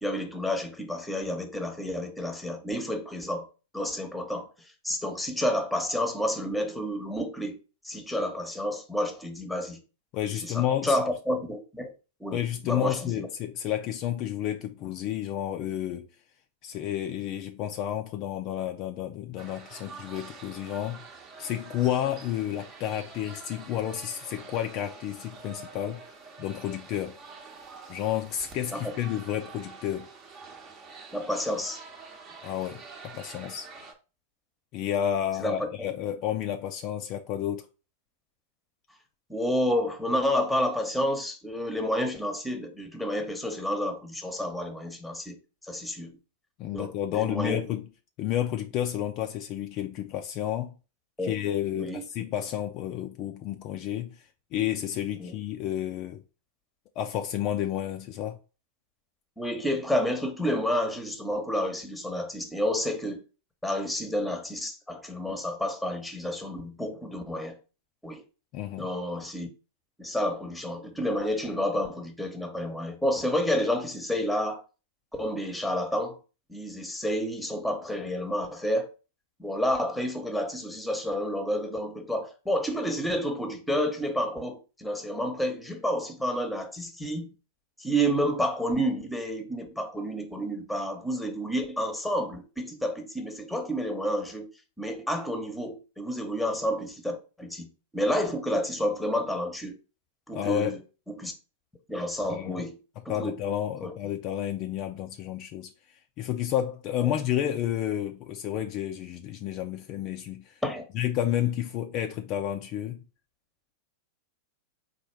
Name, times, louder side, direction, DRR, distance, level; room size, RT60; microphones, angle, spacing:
voice 1, 0.0-3.5 3.7-4.5 4.8-7.6 7.8-9.8 10.4-11.9 12.2-13.3 28.7-28.9 31.1-31.8 35.4-35.7 39.3-45.4 45.7-46.1 46.7-47.6 51.2-51.3 51.7-52.0 55.2-55.4 59.4-63.2 63.6-67.6 68.0-68.2 68.8-69.5 70.0-74.6 75.1-76.2 76.5-78.9 79.4-87.3 87.8-94.5 94.8-99.8 100.3-100.8 101.1-101.3 101.9-102.8 103.0-103.3 103.8-103.9 107.0-107.1 110.6-110.8, equal, 5° left, 1.0 m, -30 dB
voice 2, 10.1-11.0 12.3-16.1 16.6-21.0 21.4-26.1 26.4-27.2 27.9-30.1 32.4-33.7 34.7-37.7 46.6-47.9 48.2-50.7 51.2-56.2 57.0-58.4 68.5-68.9 100.3-100.7 102.3-102.7 103.1-105.7 106.2-110.6 110.9-113.0, left 11 dB, 45° left, 0.5 m, -31 dB
sound 1, 19.4-33.9, right 4 dB, 30° right, 0.9 m, -47 dB
4.2 x 2.5 x 4.6 m
figure-of-eight pair, 95°, 0 cm